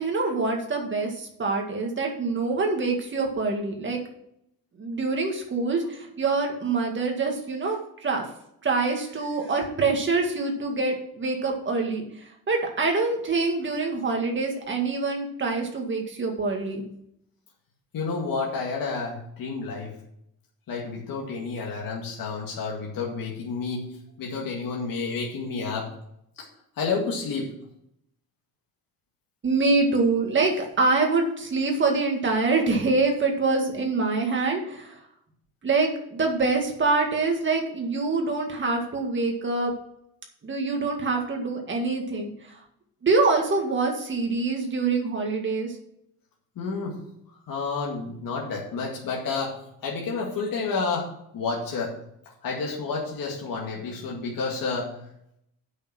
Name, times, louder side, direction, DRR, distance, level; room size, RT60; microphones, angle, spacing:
voice 1, 0.0-4.0 4.8-8.3 8.6-12.0 12.5-16.8 29.4-35.0 35.6-39.7 40.4-42.6 43.0-45.8, right 3 dB, 30° right, 2 dB, 1.9 m, -25 dB
voice 2, 17.9-20.0 20.7-23.9 24.2-25.9 26.4-26.5 26.8-27.5 46.6-47.0 47.5-49.6 49.8-51.1 51.3-51.9 52.4-54.9, left 4 dB, 60° left, -2 dB, 2.1 m, -30 dB
8.3 x 6.4 x 5.9 m, 0.75 s
cardioid pair, 160°, 37 cm